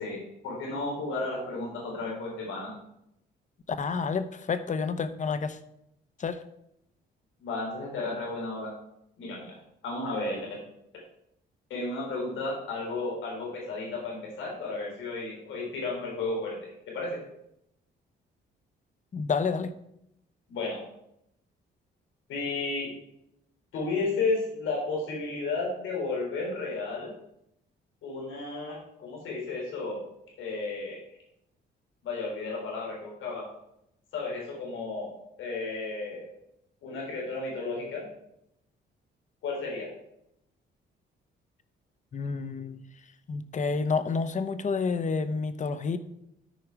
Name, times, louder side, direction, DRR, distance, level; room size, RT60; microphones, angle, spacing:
voice 1, 0.0-2.7 7.4-8.7 9.2-9.6 9.8-10.4 11.7-17.2 20.5-20.9 22.3-22.9 23.7-27.1 28.0-30.0 30.4-31.0 32.0-33.5 34.1-36.3 36.8-38.1 39.4-39.9, left 3 dB, 80° left, -2 dB, 3.9 m, -33 dB
voice 2, 3.8-5.6 6.2-6.4 19.1-19.7 42.1-42.8 43.3-46.0, left 5 dB, 40° left, 12 dB, 0.8 m, -29 dB
13.0 x 4.7 x 4.6 m, 0.79 s
cardioid pair, 90°, 20 cm